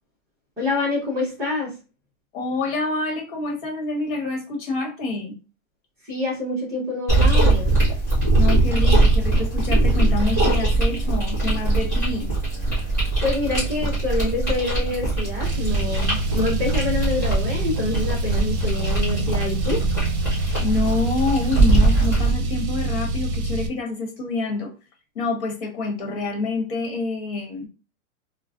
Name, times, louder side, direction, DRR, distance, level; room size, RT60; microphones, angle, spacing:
voice 1, 0.6-1.7 6.0-7.7 13.2-19.8, left 3 dB, 5° right, -12 dB, 0.8 m, -26 dB
voice 2, 2.3-5.3 8.3-12.3 20.6-24.7 25.1-27.7, left 3 dB, 45° left, 1 dB, 1.2 m, -27 dB
sound 1, 7.1-22.3, right 2 dB, 15° left, 0.4 m, -21 dB
Car, 15.4-23.7, right 2 dB, 55° right, 0.7 m, -26 dB
4.0 x 2.1 x 2.5 m, 0.32 s
hypercardioid pair, 170°, 42 cm